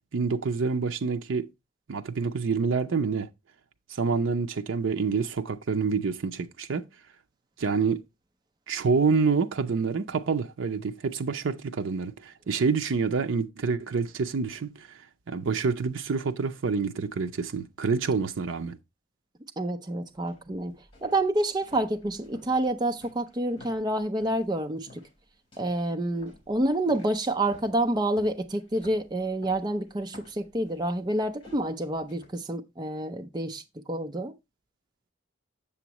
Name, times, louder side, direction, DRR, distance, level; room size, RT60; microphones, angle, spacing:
voice 1, 0.1-1.5 1.9-3.3 3.9-6.8 7.6-8.0 8.7-14.9 15.3-18.8, right 5 dB, 80° right, 0.5 m, -27 dB
voice 2, 19.6-20.7 21.0-25.0 25.6-33.6 33.9-34.3, right 1 dB, 20° right, 0.5 m, -28 dB
sound 1, 20.1-24.5 24.9-25.2 25.5-32.3, left 1 dB, 25° left, 4.6 m, -53 dB
7.1 x 7.0 x 2.9 m
head